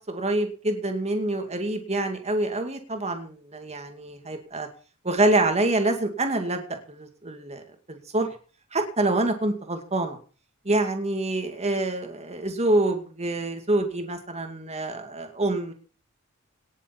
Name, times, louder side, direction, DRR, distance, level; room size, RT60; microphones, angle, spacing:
voice 1, 0.1-4.7 5.0-7.6 7.9-8.3 8.7-10.2 10.6-15.7, right 2 dB, 30° right, 5 dB, 2.4 m, -26 dB
18.5 x 7.2 x 7.1 m, 0.39 s
head